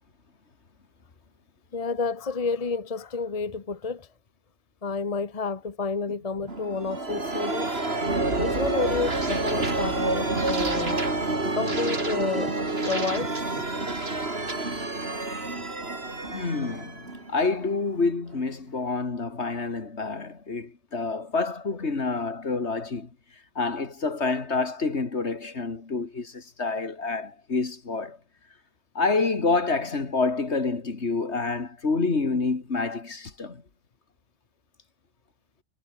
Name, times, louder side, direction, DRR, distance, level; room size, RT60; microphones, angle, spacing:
voice 1, 1.7-4.1 4.8-7.9 8.3-11.0 11.5-12.5 12.8-13.6, left 4 dB, 30° left, 1.2 m, -30 dB
sound 1, 6.5-18.0, right 2 dB, 60° right, 3.8 m, -28 dB
voice 2, 16.3-23.1 23.6-28.2 28.9-33.6, left 3 dB, 65° left, 2.7 m, -28 dB
omnidirectional pair, 1.2 m